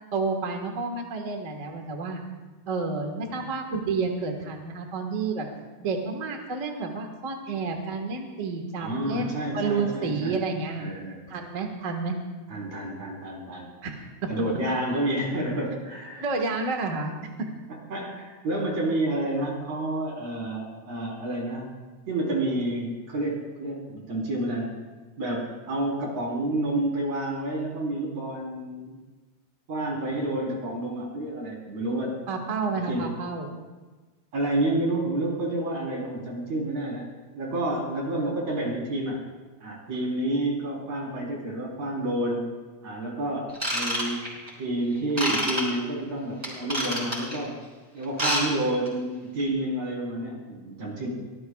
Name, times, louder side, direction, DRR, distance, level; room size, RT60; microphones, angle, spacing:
voice 1, 0.1-2.2 2.7-5.5 5.8-10.9 11.3-12.1 13.8-14.3 16.2-17.1 32.3-33.5, right 4 dB, 35° right, 2 dB, 1.3 m, -30 dB
voice 2, 8.8-10.4 10.8-11.2 12.5-13.7 14.3-16.2 17.9-21.7 22.1-24.7 25.2-28.9 29.7-32.1 32.9-33.1 34.3-37.1 37.4-39.2 39.6-42.5 42.8-43.4 43.7-44.3 44.6-47.5 47.9-51.1, right 1 dB, 60° right, -3 dB, 5.4 m, -29 dB
Ratchet pawl / Tools, 43.5-44.5 45.2-45.6 46.4-47.3 48.0-48.4 48.7-48.9 49.4-49.5, equal, 10° right, 5.7 m, -27 dB
25.0 x 19.0 x 2.4 m, 1.3 s
omnidirectional pair, 3.6 m